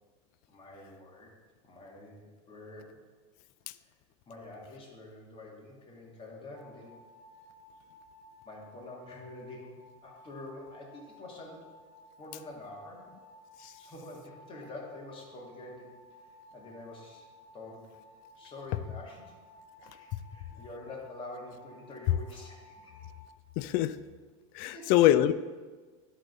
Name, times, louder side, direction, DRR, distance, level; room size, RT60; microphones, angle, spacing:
voice 1, 0.5-1.3 1.6-2.9 3.8-3.9 4.3-7.0 8.4-11.6 12.2-13.1 13.8-15.9 16.2-17.3 17.5-17.8 18.1-19.3 19.9-23.1 24.6-25.1, left 2 dB, 30° left, -2 dB, 2.3 m, -47 dB
sound 1, 6.5-23.3, left 1 dB, 5° right, 2.4 m, -56 dB
voice 2, 23.6-24.0 24.5-25.3, left 13 dB, 60° left, 14 dB, 0.4 m, -24 dB
11.5 x 4.0 x 4.0 m, 1.4 s
hypercardioid pair, 100°, 17 cm